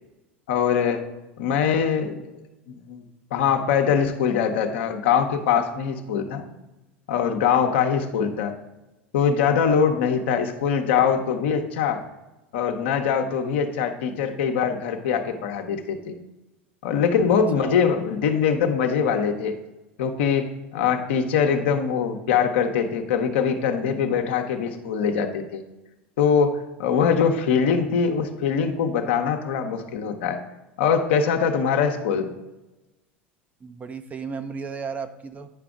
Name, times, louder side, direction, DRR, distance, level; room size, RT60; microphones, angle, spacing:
voice 1, 0.5-1.0 1.4-2.2 2.9-3.0 3.3-6.5 7.1-8.5 9.1-12.0 12.5-16.2 16.8-19.6 20.0-25.6 26.2-30.4 30.8-32.3, left 7 dB, 65° left, 4 dB, 0.9 m, -22 dB
voice 2, 33.6-35.5, right 5 dB, 25° right, 9 dB, 0.7 m, -34 dB
9.4 x 5.9 x 3.7 m, 1.0 s
figure-of-eight pair, 80°, 6 cm